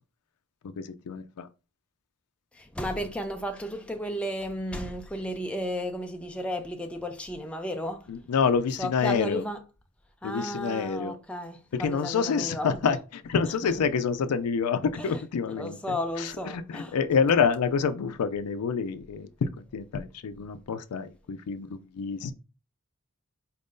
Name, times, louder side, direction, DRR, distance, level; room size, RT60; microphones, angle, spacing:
voice 1, 0.8-1.5 8.1-9.4 10.2-11.2 11.7-22.3, left 6 dB, 80° left, 0.4 m, -28 dB
voice 2, 2.5-8.1 8.8-9.6 10.2-12.9 15.0-15.2 15.5-16.9, equal, 5° left, 0.4 m, -33 dB
4.3 x 2.6 x 3.6 m
head